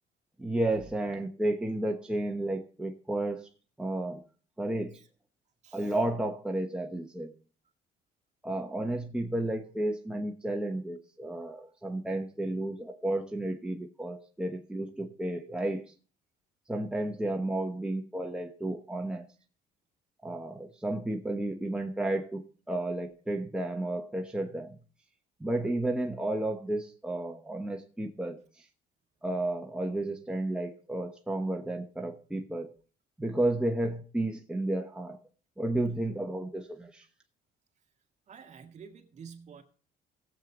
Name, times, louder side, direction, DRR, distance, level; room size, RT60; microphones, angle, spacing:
voice 1, 0.4-3.5 3.8-4.2 4.6-5.0 5.7-7.3 8.4-15.9 16.7-19.3 20.2-24.8 25.4-28.4 29.2-32.7 33.2-35.2 35.6-37.0, right 1 dB, 5° right, 2 dB, 1.1 m, -32 dB
voice 2, 5.6-5.9 38.3-39.6, right 6 dB, 45° right, 5 dB, 1.8 m, -49 dB
17.0 x 7.7 x 3.9 m, 0.40 s
cardioid pair, 110°, 17 cm